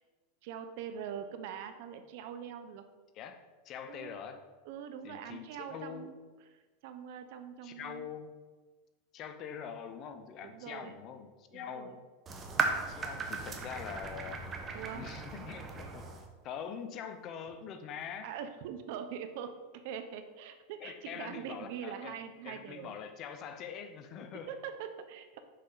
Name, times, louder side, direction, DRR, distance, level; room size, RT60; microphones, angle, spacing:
voice 1, 0.4-2.8 3.9-4.2 4.7-6.1 6.8-8.1 10.4-11.0 11.5-11.9 14.7-15.1 18.2-22.9 24.3-25.4, right 8 dB, 60° right, 8 dB, 0.7 m, -43 dB
voice 2, 3.6-4.4 5.0-6.1 7.6-8.3 9.1-12.0 12.9-14.4 14.9-16.1 16.4-18.3 20.8-22.2 22.4-24.5, left 7 dB, 40° left, 9 dB, 0.6 m, -44 dB
sound 1, 12.3-16.3, right 4 dB, 25° right, 0.9 m, -36 dB
6.6 x 5.5 x 3.9 m, 1.3 s
supercardioid pair, 135°, 0 cm